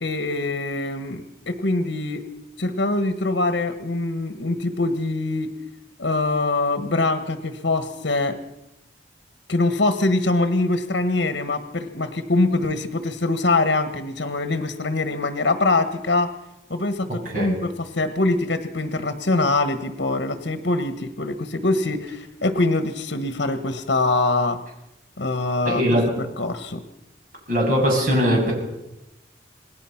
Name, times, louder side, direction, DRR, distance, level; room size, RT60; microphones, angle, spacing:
voice 1, 0.0-2.2 2.6-5.5 6.0-8.4 9.5-16.3 16.7-24.6 25.2-26.0 26.4-26.8, left 2 dB, 75° left, 9 dB, 1.4 m, -23 dB
voice 2, 25.7-26.1 27.5-28.5, equal, 45° right, 0 dB, 7.4 m, -20 dB
27.5 x 19.5 x 5.9 m, 0.91 s
head